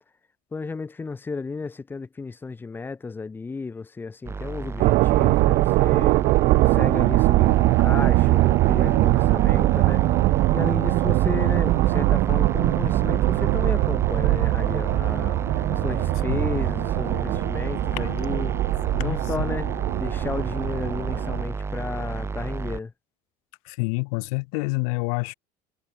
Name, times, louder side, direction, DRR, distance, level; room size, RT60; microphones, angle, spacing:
voice 1, 0.5-6.2 6.5-10.0 10.5-18.5 19.0-19.7 20.0-22.9, left 4 dB, 10° left, 1.8 m, -33 dB
sound 1, 4.2-22.8, right 4 dB, 15° right, 5.7 m, -32 dB
sound 2, 4.8-21.4, right 20 dB, 45° right, 0.9 m, -21 dB
voice 2, 16.3-16.6 18.0-18.1 18.9-19.5 23.7-25.3, left 32 dB, 75° left, 1.9 m, -28 dB
cardioid pair, 175°, 19 cm